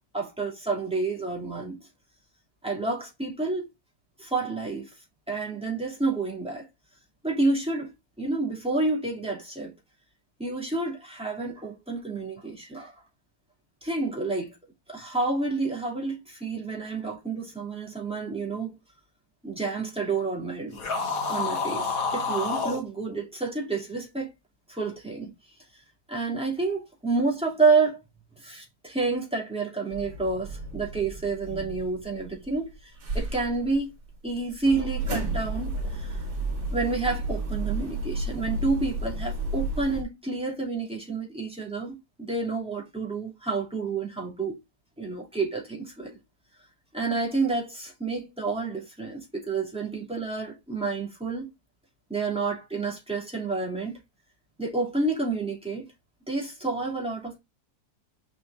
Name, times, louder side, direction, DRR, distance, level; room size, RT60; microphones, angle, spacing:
voice 1, 0.1-1.8 2.6-3.7 4.2-4.9 5.3-6.7 7.2-7.9 8.2-9.7 10.4-12.9 13.8-14.6 14.9-18.7 19.4-20.8 21.3-24.3 24.7-25.3 26.1-28.0 28.4-33.9 34.2-36.2 36.7-44.6 45.0-46.2 46.9-51.5 52.1-54.0 54.6-55.9 56.3-57.4, right 3 dB, 5° right, 2.6 m, -29 dB
sound 1, 20.7-22.8, left 4 dB, 60° left, 1.9 m, -28 dB
sound 2, 29.9-32.7 33.0-40.0, right 2 dB, 70° right, 2.7 m, -32 dB
6.2 x 5.4 x 3.4 m
omnidirectional pair, 1.7 m